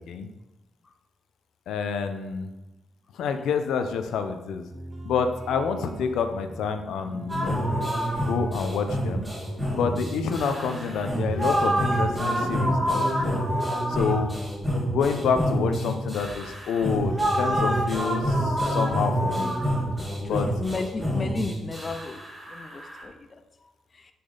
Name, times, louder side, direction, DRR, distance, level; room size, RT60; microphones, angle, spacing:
voice 1, 1.7-2.5 3.1-4.7 5.0-7.6 8.2-9.3 9.7-13.4 13.9-14.3 14.9-19.6 20.3-20.5, left 6 dB, 90° left, 7 dB, 0.7 m, -28 dB
sound 1, 4.7-13.3, right 2 dB, 30° right, 1.5 m, -41 dB
sound 2, 7.3-23.0, equal, 15° right, 2.4 m, -27 dB
voice 2, 13.7-14.1 20.6-22.2 22.6-23.1, left 3 dB, 25° left, 7 dB, 0.4 m, -33 dB
6.5 x 6.1 x 3.9 m, 1.0 s
wide cardioid pair, 175°, 0 cm